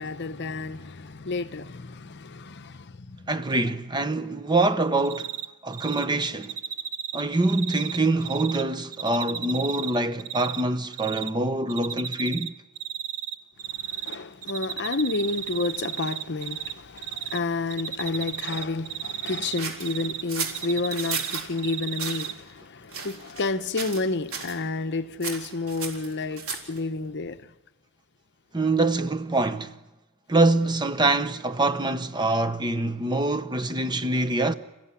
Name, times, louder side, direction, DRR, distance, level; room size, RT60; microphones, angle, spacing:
voice 1, 0.0-3.2 13.8-27.4, left 3 dB, 50° left, 0.9 m, -30 dB
voice 2, 3.3-5.3 5.6-6.6 7.1-12.5 28.5-29.7 30.3-34.5, right 2 dB, 20° right, 0.9 m, -25 dB
Cricket, 5.0-5.5 5.7-6.0 6.4-8.6 8.9-10.6 10.9-11.3 11.7-12.5 12.8-14.2 14.4-16.7 17.0-17.4 17.7-20.2 20.5-22.3, right 8 dB, 85° right, 1.2 m, -33 dB
sound 1, 19.6-21.5 21.9-22.3 22.9-23.5 23.8-24.1 24.3-24.6 25.2-26.8, right 5 dB, 70° right, 3.9 m, -33 dB
28.0 x 15.5 x 9.9 m
head